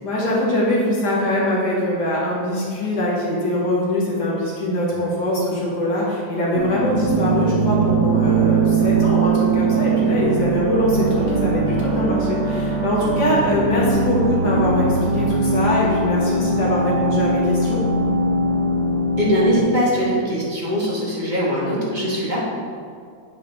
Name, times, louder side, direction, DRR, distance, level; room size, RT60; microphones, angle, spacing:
voice 1, 0.0-17.8, left 1 dB, 80° left, -5 dB, 2.2 m, -22 dB
sound 1, 6.5-19.6, right 3 dB, 55° right, 1.0 m, -21 dB
voice 2, 19.2-22.5, equal, 30° right, -5 dB, 1.4 m, -21 dB
9.0 x 4.7 x 3.4 m, 2.2 s
omnidirectional pair, 1.7 m